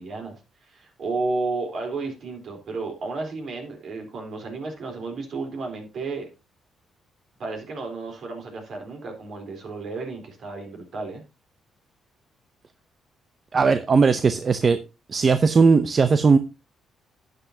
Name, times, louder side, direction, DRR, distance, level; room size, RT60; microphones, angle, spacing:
voice 1, 0.0-6.3 7.4-11.2, right 3 dB, 60° right, 3.7 m, -32 dB
voice 2, 13.5-14.8 15.1-16.4, right 5 dB, 40° right, 0.6 m, -18 dB
11.5 x 7.9 x 2.7 m
cardioid pair, 90°, 0 cm